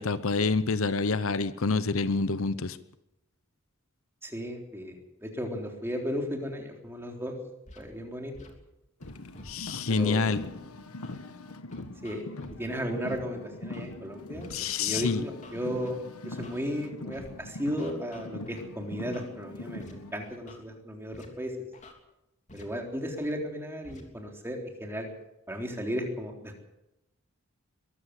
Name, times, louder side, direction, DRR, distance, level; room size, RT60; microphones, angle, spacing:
voice 1, 0.0-2.8 9.4-10.4 14.5-15.2, left 4 dB, 70° left, 14 dB, 0.9 m, -27 dB
voice 2, 4.2-7.3 7.8-8.3 9.9-10.3 12.0-12.3 12.6-14.5 14.8-21.5 22.5-25.1 25.5-26.6, equal, 10° right, 2 dB, 3.7 m, -35 dB
Scratching (performance technique), 7.7-7.8 8.3-8.5 9.0-9.8 10.4-10.5 11.0-11.2 11.7-12.6 13.1-13.2 13.7-13.9 14.4-14.6 15.1-15.9 16.4-16.6 17.1-17.3 17.8-18.6 19.1-19.3 19.8-19.9 20.2-20.6 21.1-21.3 21.7-21.9 22.5-22.6 23.2-23.3 23.8-24.0, left 2 dB, 35° left, 3.2 m, -48 dB
Car, 9.0-20.1, left 2 dB, 85° left, 1.4 m, -42 dB
22.5 x 14.5 x 8.3 m, 0.89 s
head